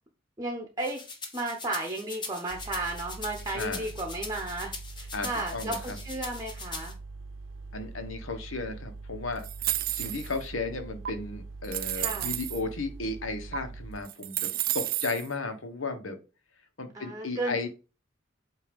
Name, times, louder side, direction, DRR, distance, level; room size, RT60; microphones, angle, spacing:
voice 1, 0.4-1.0 1.3-6.9 11.9-12.4 16.9-17.7, right 2 dB, 20° right, 2 dB, 0.9 m, -34 dB
sound 1, 0.8-6.9, left 3 dB, 25° left, 1.1 m, -41 dB
sound 2, 2.5-14.0, right 3 dB, 80° right, 0.8 m, -43 dB
voice 2, 3.5-3.9 5.1-6.0 7.7-14.5 14.7-16.2 16.8-17.7, left 3 dB, 85° left, 7 dB, 1.3 m, -34 dB
sound 3, 9.4-10.4 11.1-11.2 11.6-12.6 13.5-13.6 14.0-15.3, right 15 dB, 45° right, 0.3 m, -31 dB
8.4 x 2.8 x 5.2 m, 0.32 s
head